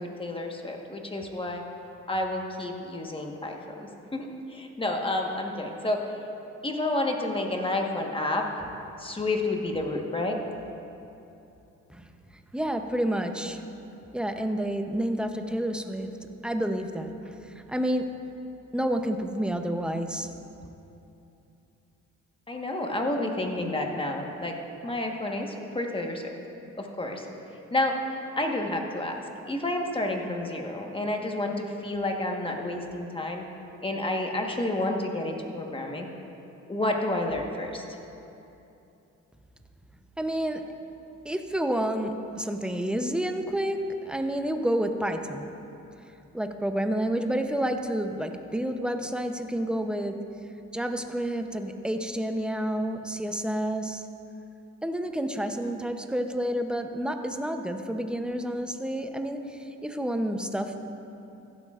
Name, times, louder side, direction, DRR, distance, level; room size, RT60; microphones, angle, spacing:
voice 1, 0.0-1.6 2.1-6.0 6.6-8.4 9.0-10.4 22.5-24.5 24.8-26.3 26.8-27.3 27.7-27.9 28.4-33.4 33.8-36.1 36.7-38.0, left 2 dB, 15° left, 1 dB, 1.3 m, -30 dB
voice 2, 12.5-13.6 14.1-16.1 16.4-18.1 18.7-20.3 40.2-40.6 41.2-45.5 46.3-50.2 50.7-54.0 54.8-60.8, right 1 dB, 5° right, 6 dB, 0.7 m, -29 dB
15.0 x 12.0 x 2.5 m, 2.8 s
cardioid pair, 90°, 30 cm